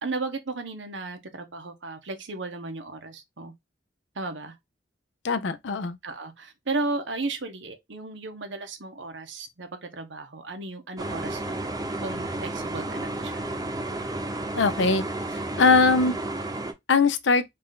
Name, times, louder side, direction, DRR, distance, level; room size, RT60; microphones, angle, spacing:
voice 1, 0.0-3.5 4.1-4.6 6.0-11.5 12.0-13.5, right 3 dB, 85° right, 1.0 m, -34 dB
voice 2, 5.2-6.0 14.6-15.0 15.6-16.2 16.9-17.4, left 4 dB, 80° left, 0.6 m, -21 dB
sound 1, 11.0-16.7, right 2 dB, 20° right, 0.7 m, -32 dB
4.0 x 2.6 x 3.7 m
head